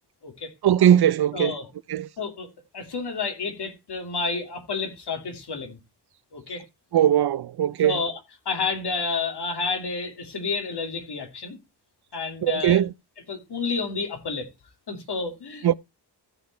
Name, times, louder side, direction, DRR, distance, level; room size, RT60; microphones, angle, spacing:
voice 1, 0.6-1.5 1.9-2.1 6.9-8.0 12.4-12.9 15.6-15.7, right 11 dB, 70° right, 0.6 m, -20 dB
voice 2, 1.3-1.7 2.2-2.5 2.7-5.8 6.3-6.6 7.8-8.1 8.4-11.6 12.1-12.8 13.3-14.5 14.9-15.8, left 4 dB, 75° left, 2.8 m, -30 dB
15.0 x 5.2 x 4.3 m
wide cardioid pair, 100°, 40 cm